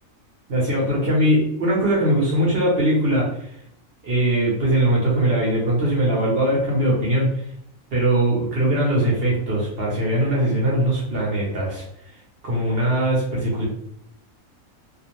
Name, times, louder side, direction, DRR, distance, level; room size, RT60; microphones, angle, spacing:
voice 1, 0.5-3.5 4.0-7.4 7.9-11.8 12.4-13.7, right 1 dB, 55° right, -4 dB, 0.8 m, -21 dB
2.5 x 2.0 x 2.9 m, 0.75 s
omnidirectional pair, 1.5 m